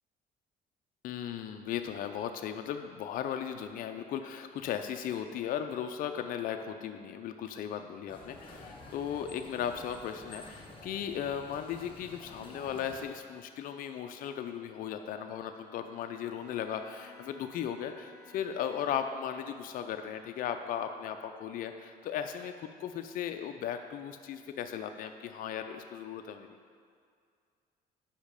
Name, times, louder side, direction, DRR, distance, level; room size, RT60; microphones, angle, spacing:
voice 1, 1.0-26.5, left 9 dB, 55° left, 7 dB, 0.4 m, -37 dB
sound 1, 8.1-13.1, left 2 dB, 30° left, 1.1 m, -50 dB
Bowed string instrument, 15.2-19.3, left 1 dB, 85° right, 1.6 m, -57 dB
5.1 x 4.9 x 5.1 m, 2.2 s
cardioid pair, 110°, 17 cm